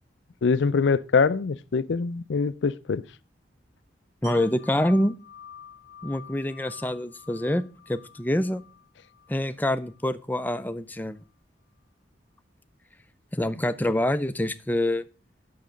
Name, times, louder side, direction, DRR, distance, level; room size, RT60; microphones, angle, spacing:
voice 1, 0.4-3.0, left 5 dB, 75° left, 0.5 m, -23 dB
voice 2, 4.2-5.2 6.0-8.6 9.3-11.2 13.3-15.0, left 1 dB, 10° left, 0.4 m, -26 dB
Wind chime, 4.2-10.0 10.4-10.6, left 6 dB, 65° right, 6.0 m, -48 dB
8.4 x 6.7 x 5.0 m
head